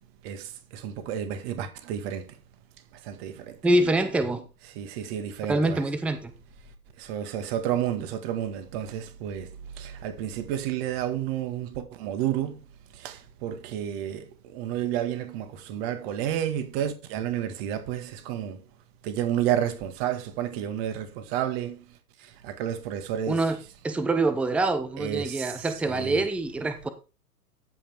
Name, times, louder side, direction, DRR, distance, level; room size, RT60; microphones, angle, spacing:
voice 1, 0.0-2.4 2.9-3.6 4.7-5.8 6.6-18.6 19.0-23.5 25.0-26.3, right 10 dB, 40° right, 1.8 m, -31 dB
voice 2, 3.6-4.5 5.5-6.3 23.3-23.6 23.8-26.9, right 2 dB, 5° right, 0.7 m, -25 dB
14.0 x 5.3 x 4.6 m
hypercardioid pair, 115°, 46 cm